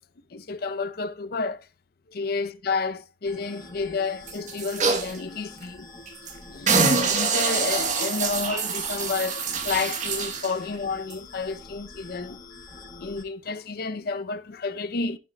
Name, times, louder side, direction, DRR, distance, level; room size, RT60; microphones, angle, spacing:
voice 1, 0.3-1.7 2.1-5.9 6.5-12.4 12.7-15.2, left 4 dB, 60° left, 0.6 m, -30 dB
sound 1, 3.2-13.2, left 2 dB, 25° left, 3.8 m, -46 dB
sound 2, 4.3-5.2 5.6-5.7 6.1-6.3 6.7-10.5 11.1-11.2, right 5 dB, 45° right, 1.2 m, -25 dB
15.5 x 5.8 x 2.2 m
head